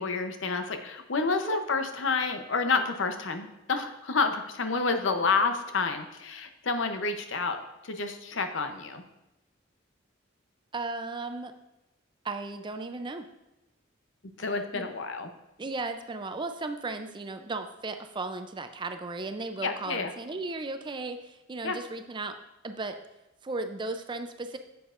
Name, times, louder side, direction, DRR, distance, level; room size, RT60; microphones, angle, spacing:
voice 1, 0.0-9.0 14.4-15.3 19.6-20.1 21.6-21.8, left 4 dB, 70° left, 7 dB, 0.7 m, -29 dB
voice 2, 10.7-11.5 12.2-13.3 14.7-14.9 15.6-22.4 22.6-23.0 23.4-24.6, right 3 dB, 25° right, 8 dB, 0.4 m, -35 dB
9.2 x 7.0 x 2.5 m, 0.97 s
head